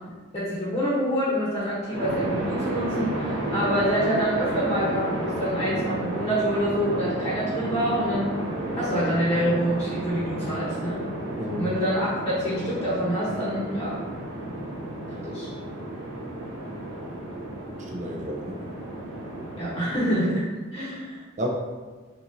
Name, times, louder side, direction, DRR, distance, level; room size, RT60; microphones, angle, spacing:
voice 1, 0.3-8.3 8.7-11.0 11.6-12.1 12.4-14.0 15.2-15.5 19.6-20.4 20.7-21.2, equal, 20° left, -8 dB, 1.0 m, -26 dB
sound 1, 1.9-20.0, right 1 dB, 60° right, 1.3 m, -32 dB
voice 2, 17.8-18.6 21.4-21.5, equal, 35° right, -1 dB, 0.6 m, -31 dB
6.4 x 3.0 x 2.7 m, 1.4 s
head